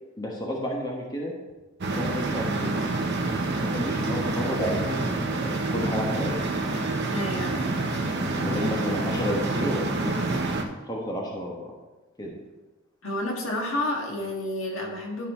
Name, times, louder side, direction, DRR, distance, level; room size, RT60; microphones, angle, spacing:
voice 1, 0.2-1.3 1.8-2.8 3.6-6.4 8.2-10.2 10.8-11.7 12.2-12.3, equal, 20° left, -2 dB, 1.2 m, -31 dB
sound 1, 1.8-10.6, right 2 dB, 55° right, 0.8 m, -27 dB
voice 2, 7.1-7.8 13.0-15.3, left 1 dB, 70° left, 0 dB, 1.7 m, -30 dB
12.0 x 4.3 x 4.3 m, 1.1 s
head